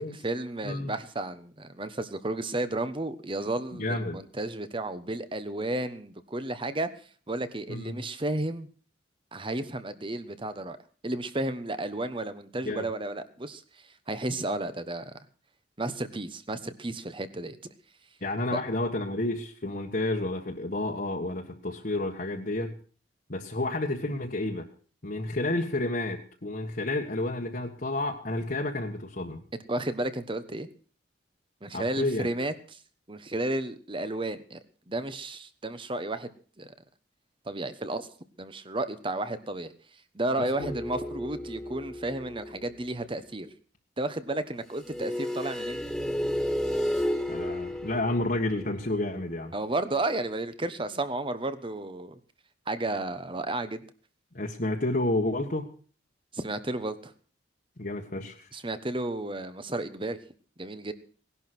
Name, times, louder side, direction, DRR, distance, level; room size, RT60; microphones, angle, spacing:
voice 1, 0.0-6.9 7.3-8.7 9.3-10.8 11.0-13.6 14.1-15.1 15.8-17.6 18.5-18.6 29.7-30.7 31.6-32.8 33.1-34.6 34.9-36.3 36.6-36.7 37.5-38.1 38.4-39.7 40.1-43.5 44.0-45.8 49.5-52.2 52.7-53.8 56.3-57.1 58.5-60.2 60.6-60.9, right 2 dB, 25° right, 12 dB, 1.2 m, -32 dB
voice 2, 3.7-4.2 7.7-8.0 12.6-12.9 18.2-22.7 23.3-24.7 25.0-29.4 31.7-32.3 40.4-40.7 47.3-49.5 54.3-55.7 57.8-58.5, left 2 dB, 45° left, 0 dB, 1.6 m, -30 dB
sound 1, 40.6-42.9 44.8-49.5, equal, ahead, 2.1 m, -33 dB
18.0 x 11.5 x 6.2 m, 0.43 s
head